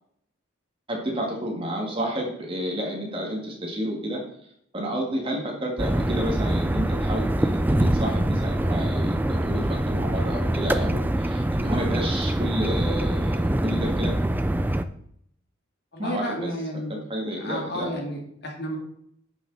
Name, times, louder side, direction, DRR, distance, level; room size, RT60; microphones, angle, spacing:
voice 1, 0.9-4.2 4.7-14.1 16.0-16.5 16.9-17.9, equal, 25° right, -1 dB, 2.1 m, -31 dB
sound 1, 5.8-14.8, right 1 dB, 10° right, 0.3 m, -24 dB
voice 2, 15.9-17.0 17.3-18.8, equal, 50° left, 1 dB, 2.0 m, -32 dB
10.5 x 6.4 x 4.1 m, 0.70 s
head